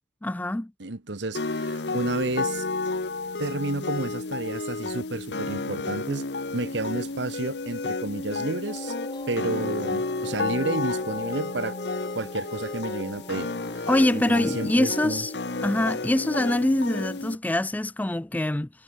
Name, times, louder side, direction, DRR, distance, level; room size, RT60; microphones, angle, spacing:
voice 1, 0.2-0.7 13.9-15.3 15.6-18.7, left 1 dB, 10° left, 0.3 m, -24 dB
voice 2, 0.8-2.7 3.4-6.3 6.5-8.9 9.3-11.7 12.1-13.5 13.7-15.2, right 2 dB, 75° right, 1.5 m, -31 dB
sound 1, 1.3-17.4, left 3 dB, 65° left, 1.1 m, -31 dB
sound 2, 8.7-16.5, left 2 dB, 25° left, 1.1 m, -40 dB
head